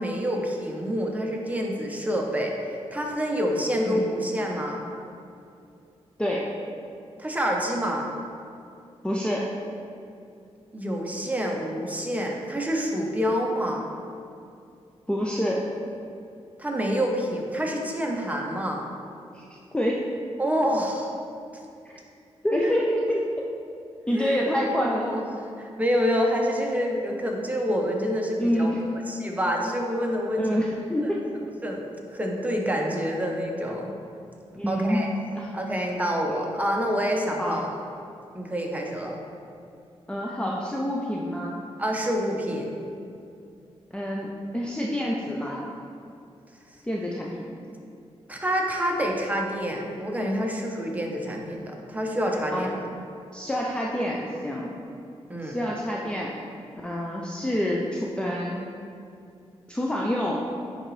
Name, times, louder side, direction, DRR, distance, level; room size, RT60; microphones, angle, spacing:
voice 1, 0.0-4.9 7.2-8.1 10.7-13.9 16.6-18.8 20.4-21.1 22.6-22.7 24.1-24.4 24.9-25.3 25.6-28.7 29.1-30.5 31.6-33.9 34.7-35.1 35.5-37.7 38.3-39.2 41.8-42.8 48.3-52.8 55.3-55.6, equal, 15° right, 0 dB, 1.0 m, -27 dB
voice 2, 6.2-6.5 9.0-9.5 15.1-15.7 19.3-19.5 19.7-20.0 21.9-22.0 22.4-23.3 24.1-25.1 28.4-28.9 30.4-31.2 34.6-35.0 35.3-35.6 37.4-37.6 40.1-41.6 43.9-45.7 46.8-47.5 52.5-52.7 53.3-54.7 55.4-56.3 56.8-58.6 59.7-60.4, equal, 10° left, -3 dB, 0.6 m, -27 dB
9.8 x 3.9 x 3.3 m, 2.5 s
cardioid pair, 80°, 11 cm